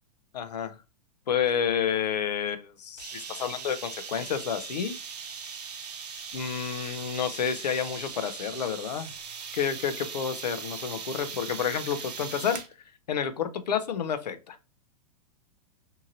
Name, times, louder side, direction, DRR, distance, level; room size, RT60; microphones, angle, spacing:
voice 1, 0.3-0.7 1.3-5.0 6.3-9.1 9.5-12.6 13.1-14.6, left 8 dB, 85° left, 10 dB, 0.6 m, -30 dB
sound 1, 3.0-12.7, right 6 dB, 85° right, 0.6 m, -39 dB
2.8 x 2.5 x 2.8 m, 0.30 s
hypercardioid pair, 120°, 20 cm